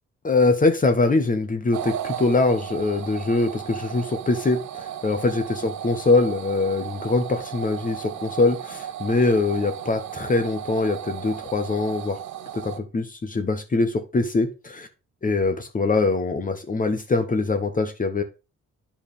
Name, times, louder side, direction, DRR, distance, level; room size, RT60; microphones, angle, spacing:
voice 1, 0.2-12.2 12.5-14.9 15.2-18.2, left 3 dB, 25° left, 8 dB, 1.0 m, -23 dB
sound 1, 1.7-12.8, right 10 dB, 70° right, 0.9 m, -35 dB
9.5 x 4.8 x 3.5 m, 0.29 s
cardioid pair, 90°, 30 cm